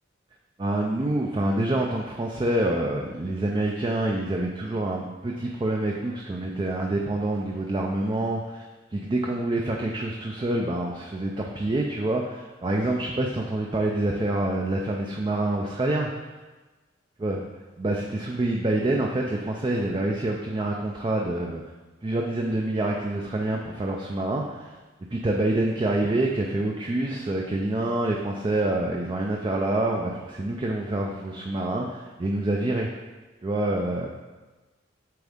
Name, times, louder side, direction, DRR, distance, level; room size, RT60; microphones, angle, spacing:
voice 1, 0.6-8.7 8.9-16.1 17.2-17.4 17.8-21.6 22.0-24.8 25.1-32.9 33.4-34.1, right 1 dB, 25° right, 0 dB, 0.4 m, -26 dB
7.7 x 3.6 x 3.6 m, 1.2 s
head